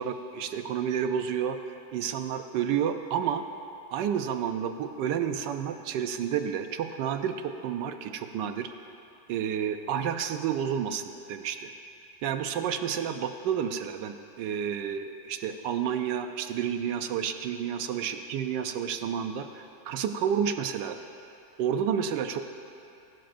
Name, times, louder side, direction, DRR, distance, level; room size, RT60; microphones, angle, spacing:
voice 1, 0.0-3.4 3.9-8.7 9.3-11.7 12.2-21.0 21.6-22.4, right 8 dB, 70° right, 7 dB, 1.1 m, -30 dB
20.5 x 12.0 x 2.6 m, 2.6 s
omnidirectional pair, 2.2 m